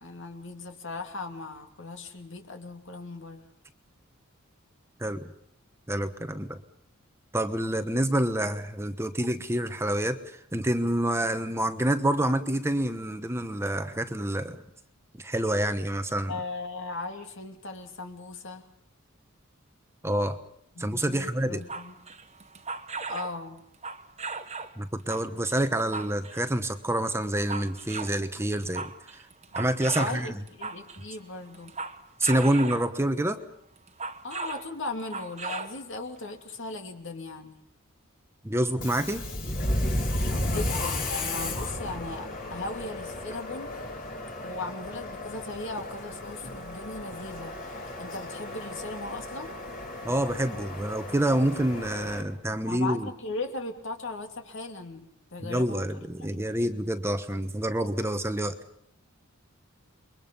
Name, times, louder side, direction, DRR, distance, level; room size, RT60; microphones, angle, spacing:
voice 1, 0.0-3.4 16.3-18.6 20.7-21.9 23.1-23.6 30.0-31.7 34.2-37.6 40.3-43.7 44.4-49.5 52.6-56.0 56.3-56.4, left 2 dB, 60° left, 5 dB, 2.8 m, -38 dB
voice 2, 5.0-5.3 5.9-6.6 7.3-14.6 15.2-16.3 20.0-20.4 20.8-21.6 24.8-29.2 29.5-30.4 32.2-33.4 38.4-39.3 50.0-53.1 55.4-58.6, right 1 dB, 10° right, 8 dB, 1.1 m, -27 dB
sound 1, 21.6-23.4 23.7-24.8 25.1-26.5 27.0-28.2 28.5-31.1 31.5-33.0 33.8-34.7 35.0-35.8 36.2-36.3, right 4 dB, 30° right, 1.3 m, -37 dB
Subway metro underground, 38.7-52.2, left 1 dB, 40° left, 3.7 m, -34 dB
29.0 x 23.0 x 5.4 m, 0.69 s
head